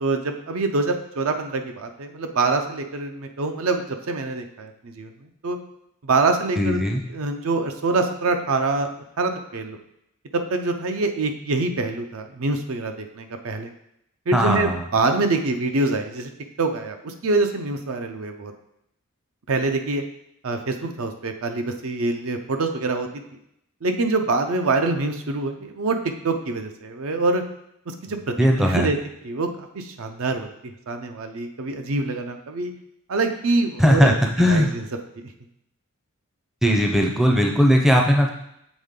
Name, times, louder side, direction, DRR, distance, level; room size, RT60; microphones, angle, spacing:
voice 1, 0.0-5.1 5.4-5.6 6.0-6.8 7.1-8.9 9.2-9.8 10.3-13.7 14.3-16.3 16.6-18.5 19.5-20.0 20.4-23.1 23.8-27.4 28.0-29.0 29.2-30.5 30.9-32.7 33.1-34.1 34.5-34.8, right 3 dB, 70° right, 6 dB, 0.6 m, -25 dB
voice 2, 6.6-7.0 14.3-14.9 28.4-28.9 33.8-34.7 36.6-38.3, equal, ahead, 1 dB, 0.5 m, -18 dB
7.1 x 3.6 x 3.7 m, 0.78 s
head